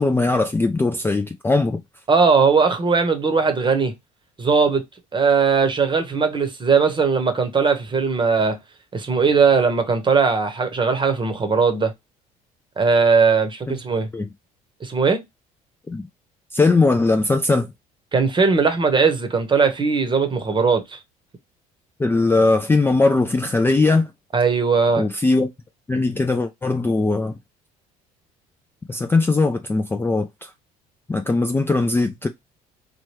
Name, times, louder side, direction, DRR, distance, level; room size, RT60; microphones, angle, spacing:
voice 1, 0.0-1.8 13.7-13.8 14.1-14.3 15.9-16.1 16.5-17.7 22.0-24.1 25.0-25.5 25.9-27.3 28.9-30.5 31.1-32.3, left 3 dB, 10° left, 0.4 m, -20 dB
voice 2, 2.1-3.9 4.4-4.8 5.1-8.6 8.9-11.9 12.8-14.1 14.8-15.2 18.1-21.0 24.3-25.1, right 5 dB, 25° right, 0.9 m, -19 dB
3.0 x 2.2 x 3.1 m
hypercardioid pair, 65°, 18 cm